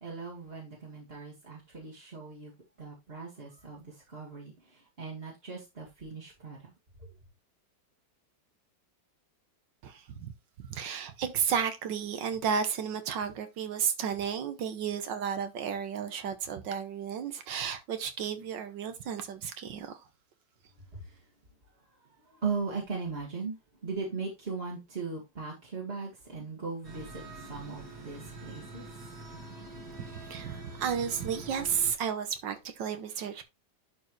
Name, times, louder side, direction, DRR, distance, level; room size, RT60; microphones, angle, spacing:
voice 1, 0.0-2.5 2.8-6.7 7.0-7.1 20.9-21.2 22.2-23.6 23.8-29.1, right 4 dB, 35° right, 2.1 m, -39 dB
voice 2, 9.8-10.3 10.6-20.0 30.0-33.4, right 7 dB, 80° right, 1.7 m, -33 dB
sound 1, 26.8-31.9, right 2 dB, 60° right, 2.5 m, -45 dB
11.0 x 4.5 x 3.2 m
omnidirectional pair, 2.0 m